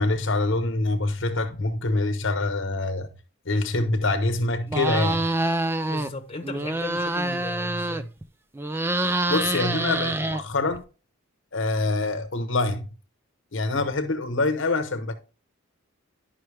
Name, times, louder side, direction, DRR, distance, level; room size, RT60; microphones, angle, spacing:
voice 1, 0.0-3.1 3.5-5.3 9.3-10.8 11.5-12.9 13.5-15.1, left 2 dB, 60° left, 0.9 m, -25 dB
sound 1, 4.7-6.1 6.4-8.2 8.6-10.8, right 2 dB, 10° right, 0.4 m, -26 dB
voice 2, 5.9-8.1, left 2 dB, 25° left, 1.0 m, -36 dB
11.0 x 5.6 x 3.3 m
head